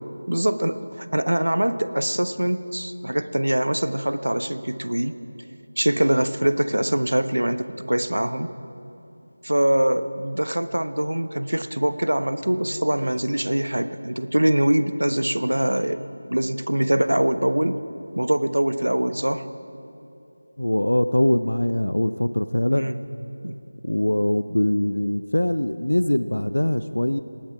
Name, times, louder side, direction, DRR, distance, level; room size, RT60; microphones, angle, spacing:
voice 1, 0.3-5.2 5.8-8.5 9.4-16.0 16.3-17.8 18.2-19.5 22.7-23.0 23.4-23.6, right 1 dB, 70° right, 11 dB, 1.1 m, -23 dB
voice 2, 20.6-22.9 23.8-27.2, left 1 dB, 70° left, 12 dB, 0.7 m, -22 dB
27.5 x 19.0 x 4.9 m, 2.8 s
figure-of-eight pair, 165°, 0 cm